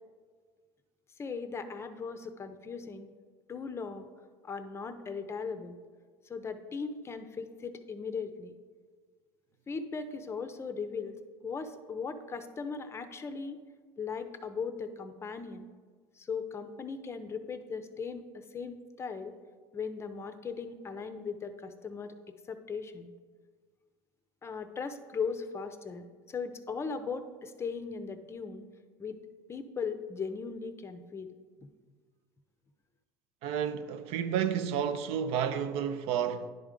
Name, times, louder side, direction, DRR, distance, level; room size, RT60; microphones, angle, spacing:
voice 1, 1.2-3.1 3.5-4.1 4.4-5.8 6.3-8.6 9.7-11.2 11.4-13.6 14.0-15.7 16.2-19.4 19.7-22.2 22.5-23.1 24.4-28.6 29.0-29.2 29.5-31.3 31.6-31.7, left 5 dB, 25° left, 0.6 m, -38 dB
voice 2, 33.4-36.5, right 8 dB, 60° right, 0.5 m, -31 dB
10.5 x 3.6 x 5.1 m
supercardioid pair, 105°, 11 cm